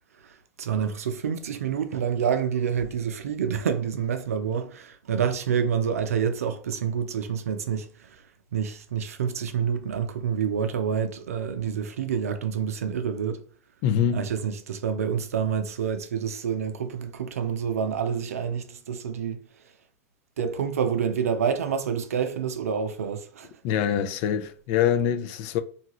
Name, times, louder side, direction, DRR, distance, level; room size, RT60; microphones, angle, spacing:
voice 1, 0.2-8.2 8.5-13.4 14.1-19.5 20.4-23.5, right 7 dB, 90° right, 0.4 m, -28 dB
voice 2, 13.8-14.3 23.6-25.6, left 9 dB, 55° left, 0.5 m, -24 dB
2.8 x 2.3 x 3.0 m
hypercardioid pair, 100°, 8 cm